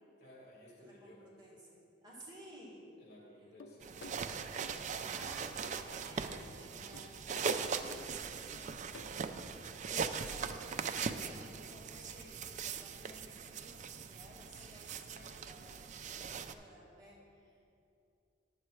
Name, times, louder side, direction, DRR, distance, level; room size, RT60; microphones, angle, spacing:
voice 1, 0.2-1.3 2.9-4.3, equal, 60° left, -3 dB, 2.4 m, -58 dB
voice 2, 0.8-2.9 3.3-3.5 5.0-9.3 9.7-17.7, equal, 25° right, -4 dB, 1.9 m, -56 dB
sound 1, 3.6-4.8 5.2-5.9 6.3-6.5 6.9-7.6 7.9-8.0 8.5-9.0, left 3 dB, 75° left, 0.6 m, -53 dB
sound 2, 3.8-16.5, right 6 dB, 40° right, 0.4 m, -40 dB
10.0 x 7.4 x 4.5 m, 2.7 s
head